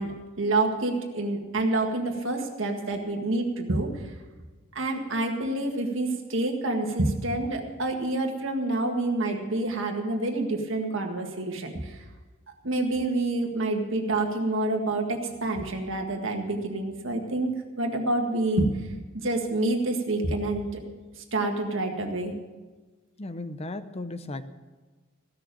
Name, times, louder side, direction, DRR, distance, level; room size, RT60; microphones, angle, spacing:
voice 1, 0.0-4.0 4.7-12.0 12.6-18.7 19.2-20.7 21.3-22.3, right 2 dB, 65° right, 3 dB, 1.8 m, -27 dB
voice 2, 23.2-24.4, left 2 dB, 30° left, 11 dB, 0.7 m, -35 dB
15.5 x 6.8 x 9.0 m, 1.3 s
head